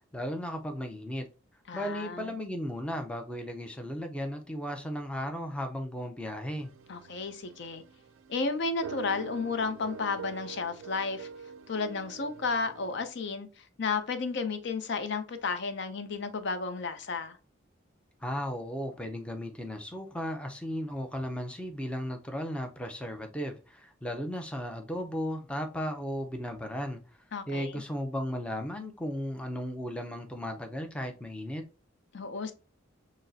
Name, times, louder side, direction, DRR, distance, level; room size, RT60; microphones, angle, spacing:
voice 1, 0.1-1.3 1.7-6.7 18.2-27.0 27.5-31.6, equal, 5° left, 0.5 m, -35 dB
voice 2, 1.7-2.3 6.9-7.8 8.3-11.3 11.7-17.4 27.3-27.8 32.1-32.5, left 4 dB, 60° left, 0.5 m, -33 dB
sound 1, 6.6-13.1, right 5 dB, 75° right, 0.4 m, -45 dB
6.2 x 2.1 x 2.6 m
head